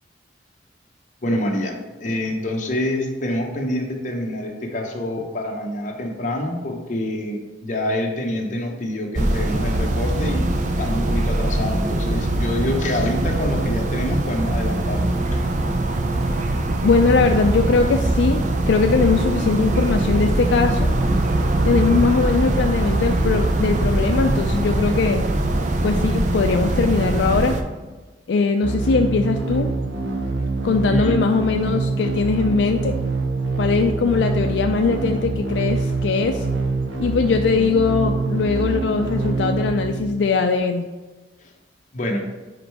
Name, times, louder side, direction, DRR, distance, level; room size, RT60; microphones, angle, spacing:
voice 1, 1.2-10.5 10.8-15.5 30.9-31.2 41.9-42.2, left 1 dB, 40° left, 1 dB, 0.9 m, -26 dB
sound 1, 9.1-27.6, right 1 dB, 40° right, 0.5 m, -22 dB
voice 2, 16.8-20.9 21.6-25.2 25.8-27.6 28.3-29.7 30.6-32.9 33.5-36.5 37.0-40.9, left 4 dB, 75° left, 5 dB, 0.4 m, -20 dB
sound 2, 28.6-40.5, right 3 dB, 90° right, 0.9 m, -25 dB
5.0 x 4.4 x 4.7 m, 1.2 s
head